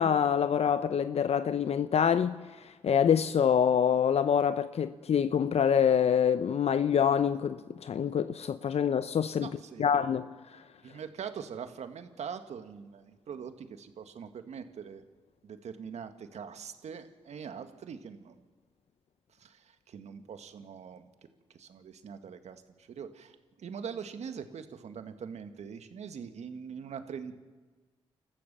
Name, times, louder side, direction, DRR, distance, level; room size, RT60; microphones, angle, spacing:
voice 1, 0.0-9.5 9.8-10.3, left 8 dB, 60° left, 0.8 m, -26 dB
voice 2, 9.4-9.9 10.8-15.0 15.4-18.4 19.4-21.1 21.5-27.4, right 7 dB, 70° right, 1.9 m, -43 dB
26.5 x 14.5 x 6.9 m
supercardioid pair, 40°, 12 cm